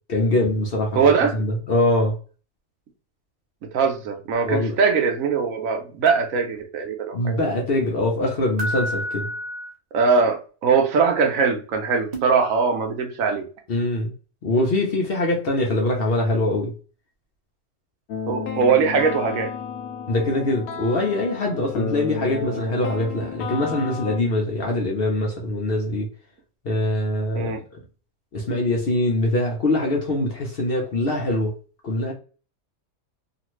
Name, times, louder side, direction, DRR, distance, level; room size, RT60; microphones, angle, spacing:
voice 1, 0.1-2.2 4.4-4.8 7.1-9.3 13.7-14.1 14.4-16.7 20.1-26.1 26.6-27.5 28.3-31.6 31.8-32.1, left 1 dB, 55° left, 0.7 m, -23 dB
voice 2, 1.0-1.4 3.7-7.4 9.9-13.4 18.3-19.5 27.4-27.6, right 5 dB, 75° right, 1.1 m, -21 dB
sound 1, 4.3-4.4 6.1-6.3 8.6-9.7 12.1-12.2, equal, 40° right, 0.6 m, -29 dB
sound 2, 18.1-24.2, left 6 dB, 85° left, 1.1 m, -32 dB
2.8 x 2.5 x 3.0 m
omnidirectional pair, 1.5 m